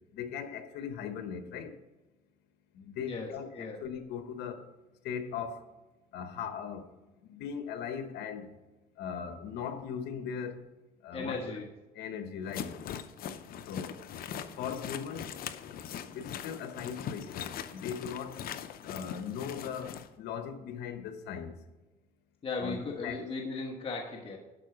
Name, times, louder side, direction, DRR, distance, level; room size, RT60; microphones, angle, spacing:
voice 1, 0.1-1.8 2.7-4.7 5.0-5.7 6.1-6.8 7.2-8.5 9.0-10.7 11.0-11.4 11.9-12.8 13.7-14.0 14.6-15.3 16.1-18.4 18.8-21.5 22.6-23.2, left 7 dB, 80° left, 8 dB, 1.1 m, -39 dB
voice 2, 3.0-3.8 11.1-11.7 22.4-24.4, left 3 dB, 35° left, 1 dB, 1.3 m, -37 dB
sound 1, 12.5-20.1, left 9 dB, 60° left, 0.6 m, -41 dB
11.5 x 4.7 x 5.9 m, 1.1 s
cardioid pair, 110°, 17 cm